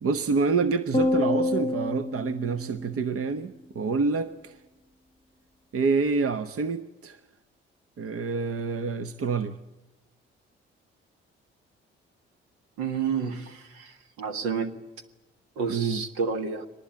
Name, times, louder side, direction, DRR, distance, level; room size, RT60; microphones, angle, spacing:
voice 1, 0.0-4.5 5.7-7.2 8.0-9.6 15.7-16.0, right 4 dB, 50° right, 1.1 m, -27 dB
sound 1, 0.9-3.4, left 2 dB, 20° left, 0.9 m, -28 dB
voice 2, 12.8-14.7 15.6-16.7, right 6 dB, 75° right, 1.7 m, -30 dB
22.5 x 20.0 x 9.0 m
hypercardioid pair, 45°, 30 cm